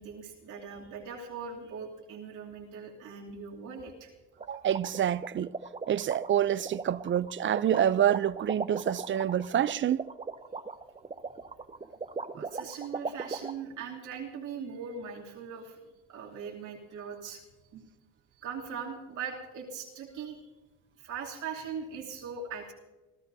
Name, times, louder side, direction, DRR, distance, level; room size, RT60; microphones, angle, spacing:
voice 1, 0.0-4.1 11.8-15.8 16.1-17.4 17.7-17.8 18.4-20.4 21.0-22.7, right 6 dB, 85° right, 2.9 m, -40 dB
sound 1, 4.4-13.5, right 4 dB, 20° right, 0.8 m, -37 dB
voice 2, 4.5-5.5 5.9-10.1, right 10 dB, 40° right, 0.5 m, -27 dB
29.5 x 13.5 x 2.7 m
cardioid pair, 90°, 30 cm